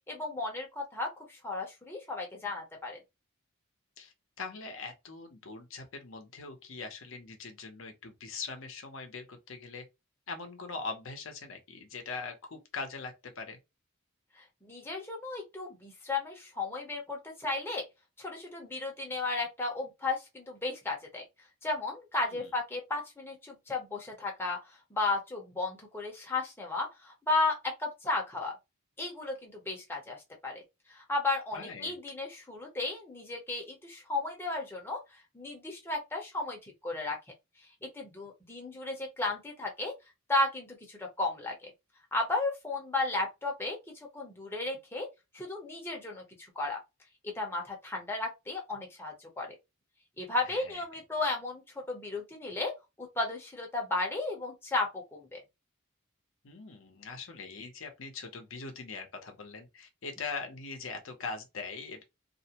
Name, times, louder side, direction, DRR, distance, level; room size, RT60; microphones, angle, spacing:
voice 1, 0.1-3.0 14.6-17.8 18.2-21.2 21.6-24.6 24.9-28.6 29.0-30.6 30.9-37.2 37.8-39.9 40.3-41.7 42.1-45.1 45.3-46.2 46.6-46.8 47.3-49.5 50.2-55.4, left 2 dB, 10° left, 0.7 m, -34 dB
voice 2, 4.0-9.9 10.3-13.6 22.3-22.5 31.5-31.9 50.4-50.8 56.4-62.0, left 4 dB, 65° left, 0.7 m, -42 dB
2.5 x 2.1 x 2.8 m
head